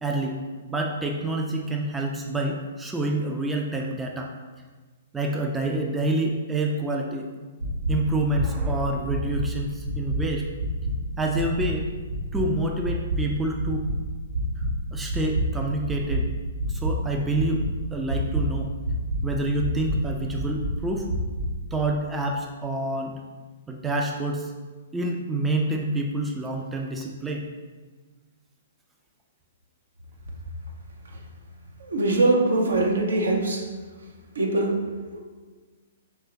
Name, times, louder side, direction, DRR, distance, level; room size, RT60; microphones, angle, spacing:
voice 1, 0.0-0.4 0.7-4.3 5.1-7.3 7.9-10.4 11.2-11.9 12.3-13.9 14.9-16.3 16.7-18.7 19.2-21.1 21.7-23.2 23.7-24.5 24.9-27.5, right 1 dB, 10° right, 1 dB, 0.3 m, -27 dB
sound 1, 7.6-7.9 8.3-8.7 9.1-9.4 9.8-10.2 10.6-10.9 11.3-11.7 12.1-12.4 12.8-13.2 13.6-13.9 14.3-14.7 15.1-15.4 15.8-16.2 16.6-16.9 17.3-17.7 18.1-18.4 18.8-19.2 19.6-19.9 20.3-20.7 21.1-21.4, right 4 dB, 90° right, 1.5 m, -27 dB
voice 2, 31.8-33.7 34.3-35.2, right 2 dB, 70° right, 1 dB, 0.7 m, -23 dB
4.6 x 3.0 x 2.8 m, 1.4 s
figure-of-eight pair, 115°, 0 cm